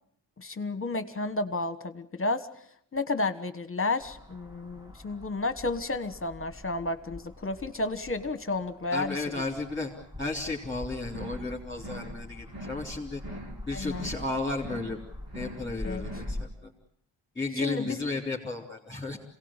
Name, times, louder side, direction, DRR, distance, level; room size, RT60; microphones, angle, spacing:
voice 1, 0.4-2.5 2.9-9.2 13.7-14.1 15.8-16.0 17.6-18.0, left 3 dB, 30° left, 11 dB, 1.4 m, -31 dB
sound 1, 4.0-16.5, left 1 dB, 10° right, 1.5 m, -44 dB
voice 2, 8.9-9.9 10.2-13.2 13.7-15.0 15.3-16.7 17.4-19.2, left 3 dB, 10° left, -3 dB, 3.6 m, -33 dB
sound 2, 11.1-11.5 11.8-12.2 12.5-12.9 13.2-13.6 13.9-14.3 14.6-15.0 15.3-15.7 16.0-16.4, right 1 dB, 55° right, 3.7 m, -42 dB
27.0 x 18.0 x 8.9 m, 0.72 s
wide cardioid pair, 135°, 43 cm